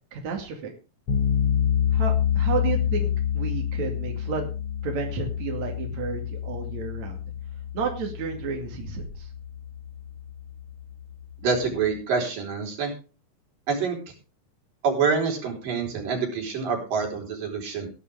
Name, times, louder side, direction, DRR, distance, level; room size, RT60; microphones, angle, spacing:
voice 1, 0.1-0.7 1.9-4.5 4.8-7.2 7.7-9.3, right 5 dB, 60° right, 2 dB, 3.6 m, -32 dB
sound 1, 1.1-12.0, left 9 dB, 60° left, 4.3 m, -28 dB
voice 2, 11.4-12.9 13.7-14.0 14.8-17.9, right 5 dB, 85° right, 0 dB, 6.0 m, -26 dB
18.5 x 10.5 x 3.5 m, 0.32 s
omnidirectional pair, 3.8 m